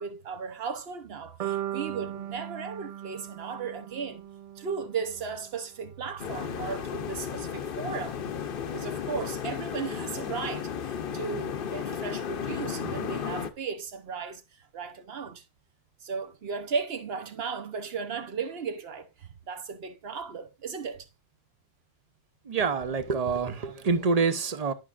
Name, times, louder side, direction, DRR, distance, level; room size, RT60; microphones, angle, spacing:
voice 1, 0.0-4.2 4.6-15.4 16.0-21.1, right 5 dB, 60° right, 1.1 m, -36 dB
sound 1, 1.4-5.5, right 12 dB, 75° right, 0.3 m, -38 dB
sound 2, 6.2-13.5, left 7 dB, 55° left, 0.8 m, -34 dB
voice 2, 22.5-24.7, right 5 dB, 40° right, 0.7 m, -26 dB
10.5 x 6.0 x 2.5 m
omnidirectional pair, 1.2 m